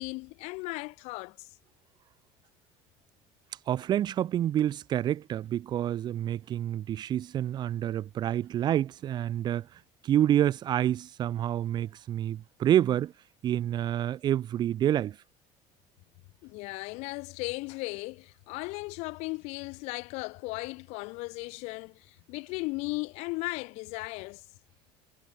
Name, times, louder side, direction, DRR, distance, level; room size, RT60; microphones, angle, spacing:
voice 1, 0.0-1.5 16.4-24.4, left 26 dB, 70° left, 1.8 m, -36 dB
voice 2, 3.7-13.1 13.4-15.2, right 11 dB, 40° right, 0.8 m, -28 dB
cardioid pair, 140°, 12 cm